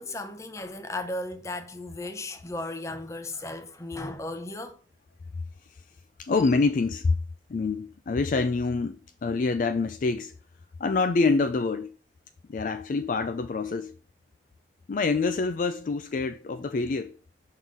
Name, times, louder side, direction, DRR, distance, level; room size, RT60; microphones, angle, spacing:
voice 1, 0.0-4.8, left 2 dB, 15° left, 0.7 m, -35 dB
voice 2, 6.2-7.1 7.5-10.3 10.8-11.9 12.5-13.9 14.9-17.2, left 4 dB, 45° left, 0.3 m, -26 dB
6.2 x 3.8 x 5.2 m
head